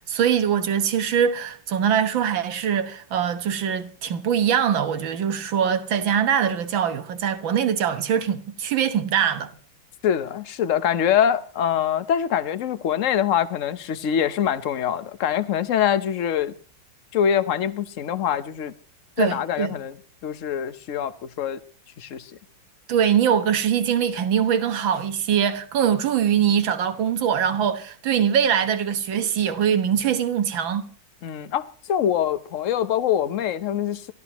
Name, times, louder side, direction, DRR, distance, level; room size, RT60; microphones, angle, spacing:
voice 1, 0.1-9.5 19.2-19.8 22.9-30.9, right 8 dB, 85° right, 2.0 m, -22 dB
voice 2, 10.0-16.5 17.1-18.7 19.2-20.0 20.2-21.6 22.0-22.3 31.2-34.1, left 9 dB, 50° left, 1.0 m, -24 dB
28.5 x 13.0 x 3.0 m
omnidirectional pair, 2.1 m